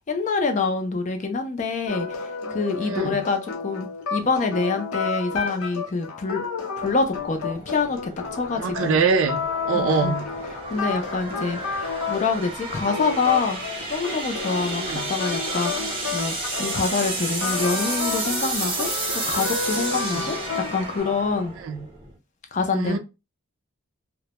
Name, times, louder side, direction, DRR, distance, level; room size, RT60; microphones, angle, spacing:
voice 1, 0.1-6.4 6.8-9.1 9.7-10.2 10.5-15.7 16.1-21.5 22.5-23.0, left 4 dB, 35° left, 0.4 m, -26 dB
sound 1, 1.9-21.0, left 5 dB, 85° left, 0.6 m, -31 dB
sound 2, 6.7-22.2, right 2 dB, 25° right, 0.7 m, -32 dB
voice 2, 8.6-10.3 14.8-15.1 20.1-20.2 21.7-21.8 22.7-23.0, right 5 dB, 70° right, 0.4 m, -24 dB
2.1 x 2.0 x 2.8 m
head